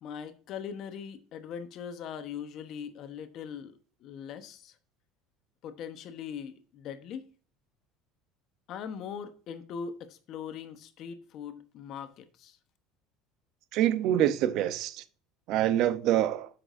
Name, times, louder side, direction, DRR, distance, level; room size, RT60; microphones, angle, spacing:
voice 1, 0.0-4.7 5.6-7.3 8.7-12.6, left 7 dB, 55° left, 1.0 m, -41 dB
voice 2, 13.7-14.9 15.5-16.5, right 12 dB, 65° right, 0.7 m, -25 dB
7.8 x 6.0 x 2.6 m
supercardioid pair, 115°, 0 cm